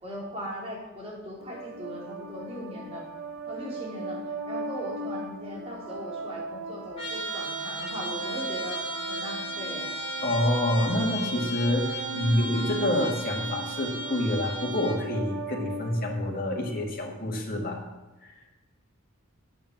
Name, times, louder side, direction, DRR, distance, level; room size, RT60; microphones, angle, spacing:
voice 1, 0.0-3.1 3.5-9.9, equal, 30° right, -4 dB, 3.7 m, -39 dB
sound 1, 1.4-16.8, right 3 dB, 70° right, 0.8 m, -38 dB
Trumpet, 7.0-15.0, right 1 dB, 25° left, 2.7 m, -36 dB
voice 2, 10.2-17.8 18.2-18.4, left 1 dB, 40° left, 0 dB, 2.1 m, -27 dB
8.7 x 8.4 x 7.4 m, 1.1 s
head